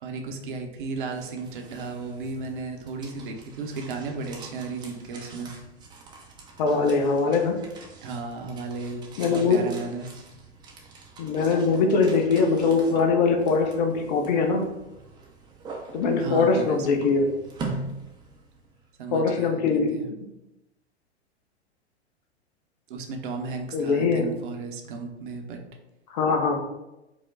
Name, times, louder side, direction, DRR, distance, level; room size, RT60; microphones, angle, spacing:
voice 1, 0.0-5.5 8.0-10.1 16.2-17.1 19.0-19.6 19.9-20.1 22.9-25.6, right 4 dB, 50° right, 3 dB, 0.8 m, -34 dB
sound 1, 0.9-18.9, right 3 dB, 15° right, 0.5 m, -43 dB
voice 2, 6.6-7.6 9.2-9.6 11.2-14.6 15.9-17.3 19.1-19.9 23.7-24.3 26.1-26.6, left 4 dB, 40° left, 4 dB, 0.7 m, -22 dB
4.7 x 2.1 x 3.8 m, 0.95 s
figure-of-eight pair, 100°, 34 cm